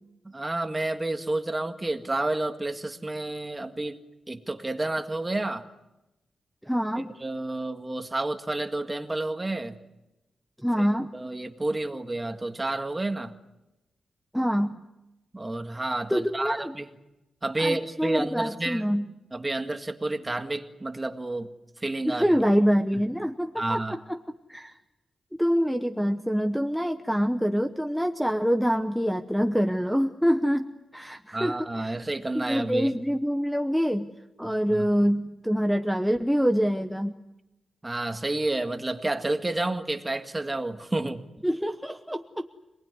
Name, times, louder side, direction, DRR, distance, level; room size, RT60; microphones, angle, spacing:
voice 1, 0.2-4.0 4.3-5.6 7.2-9.8 10.8-10.9 11.1-13.3 15.3-16.9 17.4-18.9 19.3-21.5 21.8-22.3 23.6-24.0 31.3-32.9 34.4-34.9 37.8-41.2, right 2 dB, 20° right, 6 dB, 1.9 m, -30 dB
voice 2, 6.6-7.1 10.6-11.1 14.3-14.8 16.1-16.7 17.6-19.1 22.1-24.2 24.5-24.8 25.4-30.7 30.9-31.9 32.3-34.1 34.4-37.2 41.4-42.5, equal, ahead, 8 dB, 1.0 m, -25 dB
26.5 x 20.0 x 9.7 m, 0.97 s
cardioid pair, 95°, 0 cm